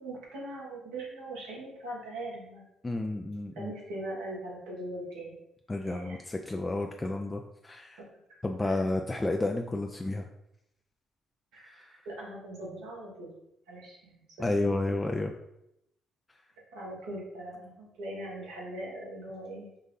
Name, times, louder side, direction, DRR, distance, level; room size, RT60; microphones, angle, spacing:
voice 1, 0.0-2.6 3.5-5.4 5.7-6.2 8.6-8.8 11.5-13.3 13.7-14.5 16.7-19.7, right 1 dB, 80° right, -4 dB, 1.5 m, -41 dB
voice 2, 2.8-3.7 5.7-8.0 8.4-10.3 11.6-11.9 14.4-15.3, left 2 dB, 20° left, 3 dB, 0.4 m, -31 dB
5.4 x 2.6 x 3.7 m, 0.82 s
hypercardioid pair, 50°, 0 cm